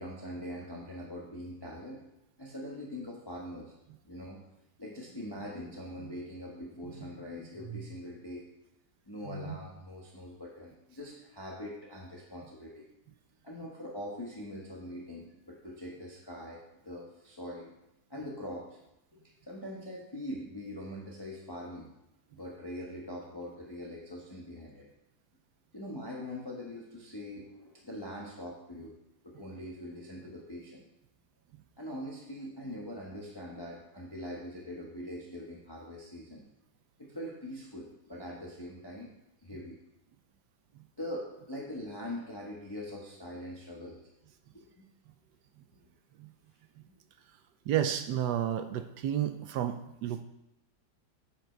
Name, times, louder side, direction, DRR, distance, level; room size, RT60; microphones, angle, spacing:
voice 1, 0.0-2.0 2.4-3.7 4.0-4.4 4.8-8.5 9.1-12.9 13.4-17.7 18.1-18.8 19.1-21.9 22.3-24.9 25.7-28.9 29.2-30.8 31.8-36.4 37.0-39.1 39.4-39.8 41.0-44.0 44.5-44.9, equal, 15° left, -3 dB, 1.1 m, -42 dB
voice 2, 47.7-50.2, right 10 dB, 70° right, 9 dB, 1.1 m, -31 dB
8.2 x 7.3 x 4.5 m, 0.86 s
omnidirectional pair, 2.1 m